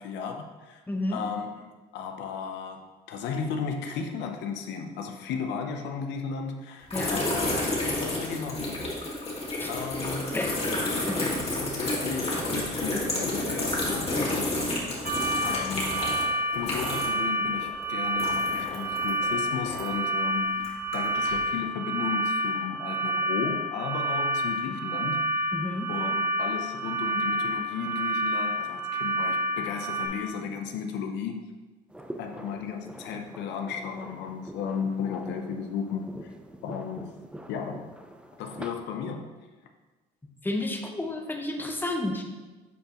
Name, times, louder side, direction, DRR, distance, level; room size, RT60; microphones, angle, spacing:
voice 1, 0.0-0.8 1.1-7.5 7.8-8.9 9.7-10.4 11.2-14.8 15.4-16.3 16.5-20.7 20.9-25.5 25.9-31.5 32.2-36.3 36.6-37.1 37.5-37.9 38.4-39.3, left 6 dB, 75° left, 4 dB, 0.7 m, -35 dB
voice 2, 0.9-1.2 6.9-7.2 9.6-9.7 10.3-10.6 11.1-11.2 25.5-25.9 40.4-42.2, left 1 dB, 10° left, 3 dB, 0.9 m, -31 dB
sound 1, 6.9-17.3 17.5-20.1 20.6-21.4, left 1 dB, 35° left, 2.0 m, -30 dB
sound 2, 15.0-30.1, right 1 dB, 50° right, 1.1 m, -29 dB
sound 3, 31.9-38.7, right 1 dB, 5° right, 0.5 m, -44 dB
8.3 x 4.4 x 3.0 m, 1.2 s
supercardioid pair, 85°, 18 cm